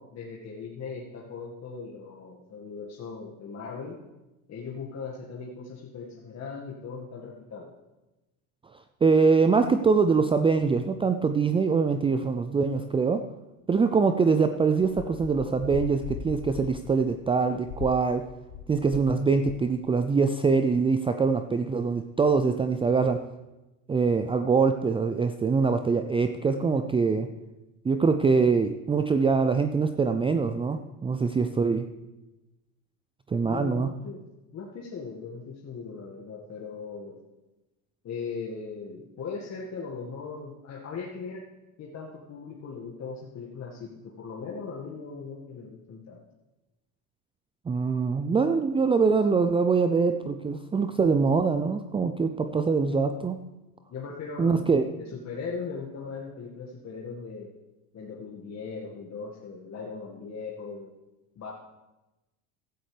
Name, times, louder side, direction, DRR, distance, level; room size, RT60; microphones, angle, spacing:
voice 1, 0.0-4.0 4.5-7.7 33.4-34.2 34.5-37.2 38.0-41.4 41.8-46.2 53.9-57.5 57.9-60.9 61.4-61.5, left 5 dB, 35° left, -2 dB, 2.0 m, -39 dB
voice 2, 9.0-13.2 13.7-18.3 18.7-23.2 23.9-27.3 27.8-31.9 33.3-33.9 47.7-53.4 54.4-54.8, right 4 dB, 15° right, 8 dB, 0.5 m, -24 dB
sound 1, 14.8-19.1 19.4-19.8, left 8 dB, 55° left, 1.1 m, -40 dB
15.5 x 12.5 x 3.4 m, 1.0 s
hypercardioid pair, 80°, 44 cm